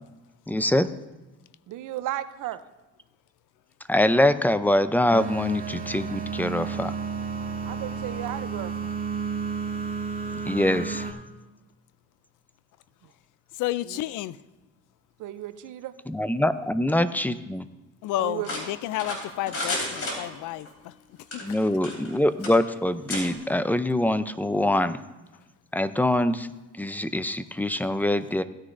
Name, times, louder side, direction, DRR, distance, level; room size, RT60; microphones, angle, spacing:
voice 1, 0.5-0.9 3.9-6.9 10.5-11.1 16.1-17.7 21.4-25.0 25.7-26.5 26.8-28.4, left 1 dB, 5° left, 0.5 m, -24 dB
voice 2, 1.7-2.6 7.7-8.9 13.9-14.0 15.2-15.9 18.2-18.5, right 13 dB, 85° right, 0.7 m, -34 dB
sound 1, 5.1-11.1, right 5 dB, 30° right, 2.0 m, -32 dB
voice 3, 13.6-14.4 18.0-20.9 21.3-21.4, left 15 dB, 90° left, 0.5 m, -31 dB
sound 2, 18.4-20.7 21.2-22.2 22.4-22.6 23.1-23.3, left 1 dB, 50° left, 3.6 m, -32 dB
16.5 x 9.8 x 2.6 m
cardioid pair, 90°, 30 cm